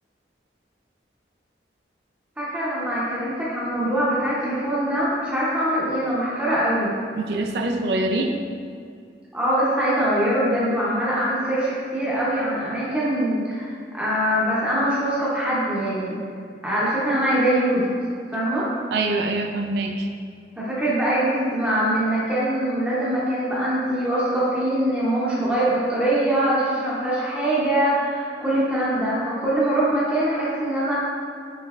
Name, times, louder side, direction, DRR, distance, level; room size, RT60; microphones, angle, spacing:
voice 1, 2.4-6.9 9.3-16.2 16.6-17.9 18.3-18.7 20.6-30.9, right 1 dB, 5° right, -9 dB, 0.7 m, -23 dB
voice 2, 7.1-8.3 18.9-20.1, right 2 dB, 70° right, 4 dB, 0.4 m, -24 dB
5.4 x 3.1 x 2.4 m, 2.3 s
head